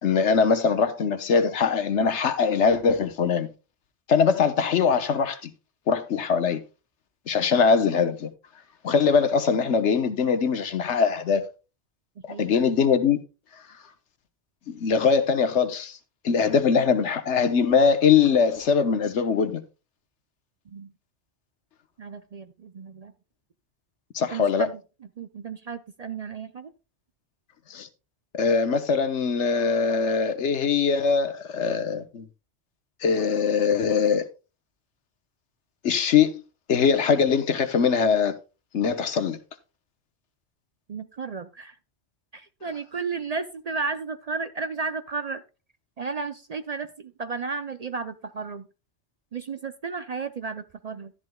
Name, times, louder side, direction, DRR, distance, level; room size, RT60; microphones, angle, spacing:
voice 1, 0.0-3.5 4.1-5.5 5.9-6.6 7.3-8.3 8.8-11.5 12.4-13.2 14.7-16.0 16.2-19.6 24.1-24.7 27.7-27.9 28.4-32.3 33.0-34.2 35.8-36.4 36.7-38.3 38.7-39.4, left 6 dB, 85° left, 1.3 m, -22 dB
voice 2, 12.2-12.7 20.7-20.9 22.0-23.1 24.3-24.8 25.2-26.7 40.9-41.8 42.3-45.4 46.0-48.7 49.3-51.1, right 4 dB, 50° right, 0.5 m, -33 dB
12.5 x 11.0 x 2.2 m
omnidirectional pair, 1.1 m